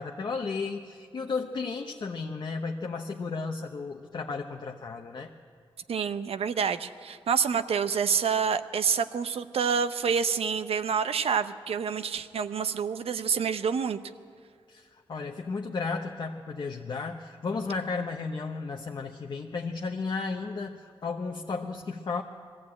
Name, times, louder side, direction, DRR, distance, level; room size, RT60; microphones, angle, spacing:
voice 1, 0.0-5.3 14.7-22.2, left 4 dB, 50° left, 2 dB, 0.8 m, -34 dB
voice 2, 5.9-14.0, right 6 dB, 80° right, 11 dB, 0.7 m, -27 dB
20.5 x 14.5 x 8.6 m, 2.2 s
wide cardioid pair, 140°, 10 cm